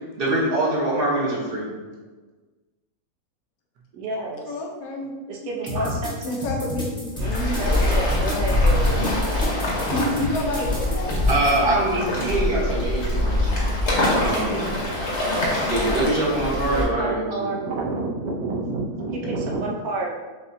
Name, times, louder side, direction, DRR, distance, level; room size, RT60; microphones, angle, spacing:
voice 1, 0.1-1.7 5.7-5.9 11.3-13.6 14.2-14.7 15.6-17.5, right 1 dB, 40° right, -6 dB, 1.2 m, -24 dB
voice 2, 3.9-4.5 5.3-6.4 7.2-9.0 16.8-20.1, right 2 dB, 80° right, -2 dB, 1.2 m, -29 dB
voice 3, 4.5-5.5 6.2-7.1 9.9-11.1 15.4-15.7, left 2 dB, 80° left, 0 dB, 1.2 m, -29 dB
sound 1, 5.7-11.6, left 1 dB, 5° left, 0.8 m, -31 dB
Waves surf, 7.1-16.9, left 1 dB, 50° left, 1.3 m, -23 dB
6.5 x 2.7 x 2.6 m, 1.3 s
omnidirectional pair, 1.6 m